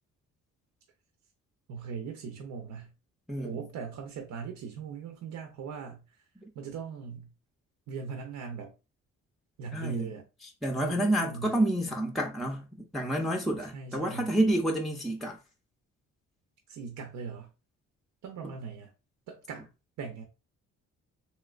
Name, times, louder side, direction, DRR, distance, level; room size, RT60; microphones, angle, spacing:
voice 1, 1.7-2.9 3.4-6.3 6.5-7.3 7.9-8.7 9.6-10.2 10.8-11.6 13.6-14.3 16.7-17.5 18.2-18.9 19.3-19.7 20.0-20.2, right 6 dB, 75° right, 0.7 m, -40 dB
voice 2, 9.7-10.1 10.6-15.4, right 1 dB, ahead, 0.5 m, -29 dB
3.2 x 2.9 x 2.4 m
cardioid pair, 90°, 30 cm